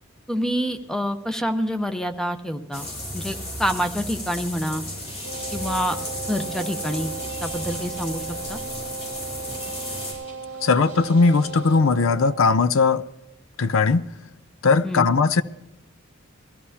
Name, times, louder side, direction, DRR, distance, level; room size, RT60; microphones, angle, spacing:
voice 1, 0.3-2.9 3.1-4.8 5.5-6.0 6.3-7.1 7.4-8.2 8.5-8.6 14.8-15.1, equal, 5° left, 0.8 m, -27 dB
sound 1, 2.7-10.1, left 1 dB, 45° left, 6.0 m, -34 dB
sound 2, 5.0-11.8, right 1 dB, 30° left, 6.0 m, -46 dB
Wind instrument woodwind instrument, 5.2-12.5, right 4 dB, 65° right, 0.7 m, -36 dB
voice 2, 10.6-13.0 13.6-14.0 14.6-15.4, left 4 dB, 70° left, 0.5 m, -19 dB
22.0 x 14.5 x 2.8 m
head